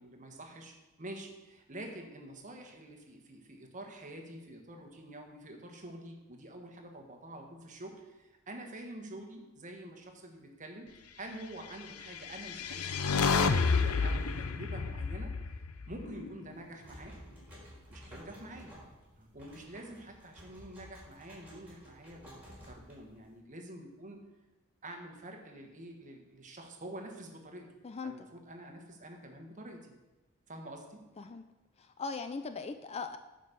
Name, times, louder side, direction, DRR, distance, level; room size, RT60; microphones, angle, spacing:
voice 1, 0.0-15.3 15.9-17.2 17.9-18.7 19.2-24.2 24.8-27.7 28.0-29.9 30.5-31.0, right 1 dB, 35° right, 3 dB, 1.4 m, -47 dB
sound 1, 12.1-16.4, left 5 dB, 75° left, 0.6 m, -30 dB
sound 2, 16.5-23.4, equal, 10° right, 3.9 m, -53 dB
voice 2, 27.8-28.3 31.2-31.4 31.8-33.2, left 4 dB, 30° left, 9 dB, 0.4 m, -39 dB
9.5 x 5.2 x 6.8 m, 1.1 s
head